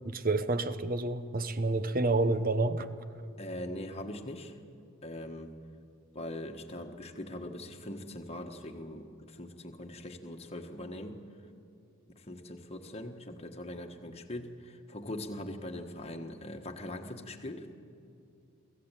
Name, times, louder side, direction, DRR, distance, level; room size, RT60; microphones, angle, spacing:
voice 1, 0.0-2.9, right 2 dB, 40° right, 12 dB, 0.9 m, -29 dB
voice 2, 3.4-4.6 5.0-5.5 6.1-11.2 12.1-17.7, left 1 dB, 25° left, 4 dB, 1.5 m, -41 dB
24.5 x 15.5 x 9.0 m, 2.5 s
head